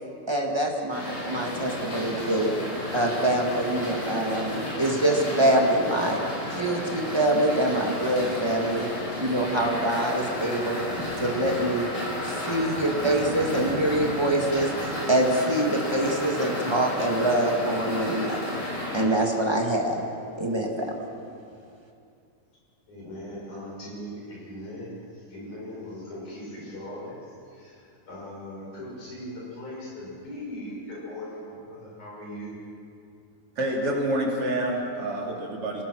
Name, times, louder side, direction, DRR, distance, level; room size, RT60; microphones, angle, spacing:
voice 1, 0.3-2.5 2.9-6.2 6.5-8.9 9.2-10.8 11.2-11.9 12.3-18.4 18.9-20.0 20.4-21.0, right 1 dB, 20° right, 0 dB, 0.6 m, -25 dB
sound 1, 0.9-19.0, left 1 dB, 85° left, 8.3 m, -32 dB
voice 2, 22.9-32.6, left 1 dB, 60° left, -4 dB, 7.7 m, -39 dB
voice 3, 33.6-35.8, right 1 dB, 40° right, -2 dB, 3.5 m, -27 dB
26.0 x 19.0 x 6.3 m, 2.5 s
omnidirectional pair, 4.0 m